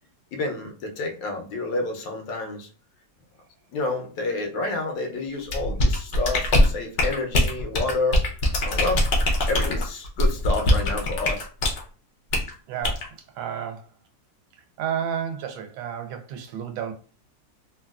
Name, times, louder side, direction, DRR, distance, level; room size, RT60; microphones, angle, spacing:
voice 1, 0.3-2.7 3.7-8.3 8.6-9.1 9.5-11.5, left 3 dB, 80° left, 1.4 m, -29 dB
sound 1, 5.5-11.8 12.3-12.5 12.8-13.0, left 1 dB, 60° left, 0.7 m, -22 dB
voice 2, 12.7-13.9 14.8-16.9, right 8 dB, 90° right, 1.3 m, -31 dB
3.6 x 2.3 x 2.3 m
omnidirectional pair, 2.0 m